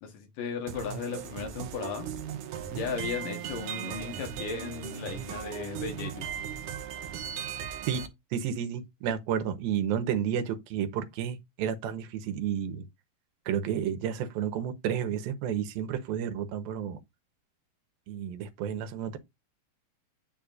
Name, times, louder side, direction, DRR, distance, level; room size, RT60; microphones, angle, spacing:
voice 1, 0.0-2.1 2.7-6.3, left 6 dB, 70° left, 2.9 m, -36 dB
sound 1, 0.7-8.1, right 9 dB, 70° right, 2.0 m, -37 dB
voice 2, 7.9-12.9 13.5-17.0 18.1-19.2, right 9 dB, 85° right, 2.9 m, -31 dB
8.7 x 7.2 x 2.5 m
omnidirectional pair, 4.1 m